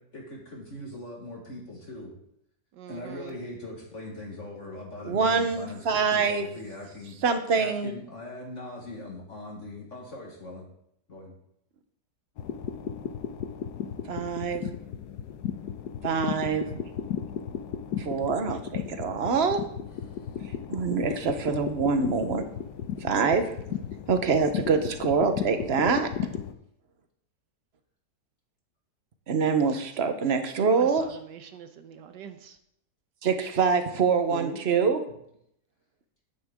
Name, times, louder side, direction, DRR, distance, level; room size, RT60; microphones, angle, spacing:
voice 1, 0.0-2.1 2.9-7.2 7.6-10.7 11.1-11.3 34.3-34.6, left 1 dB, 45° left, -1 dB, 1.9 m, -40 dB
voice 2, 2.7-3.4 29.7-29.8 30.2-32.6, right 7 dB, 90° right, 7 dB, 1.5 m, -45 dB
voice 3, 5.0-6.5 7.2-7.9 14.1-14.7 16.0-16.7 18.0-19.6 20.7-22.4 23.0-23.5 24.1-26.1 29.3-31.0 33.2-35.0, right 5 dB, 45° right, 8 dB, 1.0 m, -25 dB
sound 1, 12.4-26.5, left 8 dB, 75° left, 1.3 m, -35 dB
11.0 x 9.7 x 3.6 m, 0.73 s
omnidirectional pair, 1.8 m